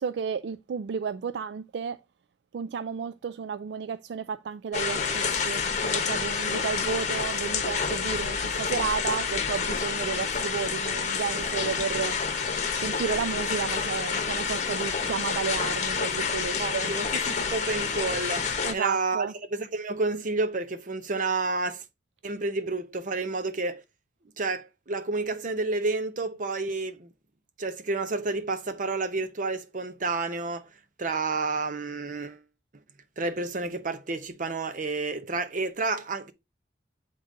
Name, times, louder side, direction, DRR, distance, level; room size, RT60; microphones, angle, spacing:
voice 1, 0.0-2.0 2.5-12.2 12.8-16.9 18.6-19.3, right 6 dB, 70° right, 0.3 m, -32 dB
sound 1, 4.7-18.7, left 5 dB, 45° left, 1.0 m, -28 dB
voice 2, 16.6-21.8 22.2-23.8 24.4-27.1 27.6-30.7 31.0-32.4 33.2-36.3, right 3 dB, 50° right, 0.8 m, -30 dB
7.9 x 3.8 x 3.8 m
head